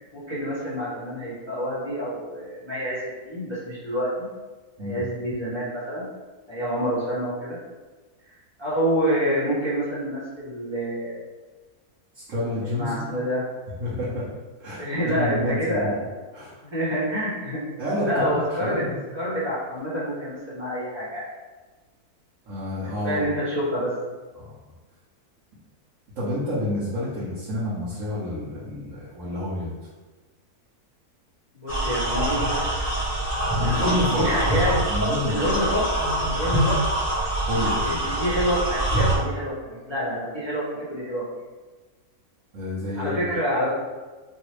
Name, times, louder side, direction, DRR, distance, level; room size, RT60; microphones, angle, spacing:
voice 1, 0.1-4.3 4.8-6.1 6.5-7.6 8.6-11.2 12.6-13.4 14.8-16.0 16.6-17.6 18.0-18.8 19.1-21.2 23.0-23.9 31.5-32.5 33.5-34.8 35.2-35.8 36.2-36.8 37.8-41.2 42.9-43.7, equal, 20° right, -10 dB, 1.4 m, -27 dB
voice 2, 12.1-13.1 13.8-14.3 14.6-16.0 16.3-16.5 17.8-19.0 22.5-23.3 24.4-24.5 26.1-29.7 33.6-34.3 34.8-35.5 37.5-38.0 42.5-43.3, left 1 dB, 60° right, -10 dB, 1.2 m, -29 dB
sound 1, 31.7-39.2, right 1 dB, 15° left, 0.8 m, -24 dB
3.2 x 2.9 x 3.1 m, 1.3 s
omnidirectional pair, 1.6 m